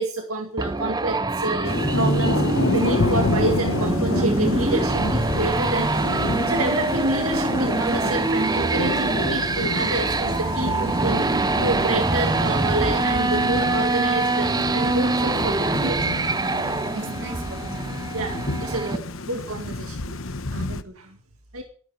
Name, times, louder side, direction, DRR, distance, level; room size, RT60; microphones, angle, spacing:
voice 1, 0.0-2.4 2.7-11.3 11.6-16.1 18.1-20.2 21.5-21.6, right 2 dB, 80° right, 4 dB, 2.2 m, -28 dB
sound 1, 0.6-19.0, right 2 dB, 20° right, 0.6 m, -24 dB
Thunder / Rain, 1.6-20.8, left 2 dB, 65° left, 1.1 m, -29 dB
voice 2, 16.8-18.3 20.5-21.2, right 2 dB, 55° right, 4 dB, 3.8 m, -41 dB
12.5 x 11.5 x 6.5 m, 0.42 s
head